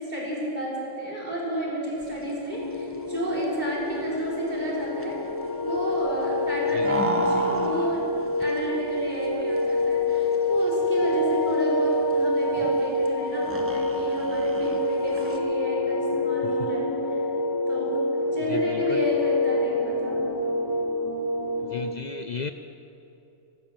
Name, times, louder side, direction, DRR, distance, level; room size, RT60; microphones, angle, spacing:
voice 1, 0.0-5.2 5.6-8.1 8.4-17.2 17.7-18.0 18.3-20.2, right 1 dB, 35° right, -5 dB, 4.2 m, -31 dB
sound 1, 2.0-15.4, right 2 dB, 10° right, 0.8 m, -35 dB
sound 2, 2.5-21.9, left 2 dB, 25° left, 0.6 m, -27 dB
voice 2, 18.5-19.0 21.7-22.5, left 6 dB, 65° left, 8 dB, 0.4 m, -35 dB
14.5 x 12.5 x 7.3 m, 2.9 s
omnidirectional pair, 1.3 m